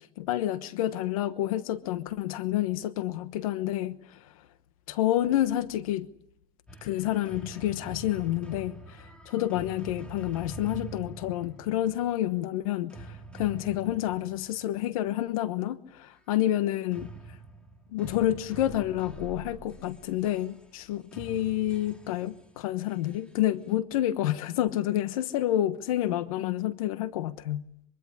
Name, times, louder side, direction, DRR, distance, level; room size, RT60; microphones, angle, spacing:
voice 1, 0.2-4.3 4.9-6.1 6.8-17.1 17.9-27.6, left 13 dB, 90° left, 1.1 m, -29 dB
sound 1, 6.7-15.1 16.9-23.7, right 3 dB, 5° left, 2.3 m, -46 dB
24.0 x 24.0 x 9.9 m
supercardioid pair, 155°, 17 cm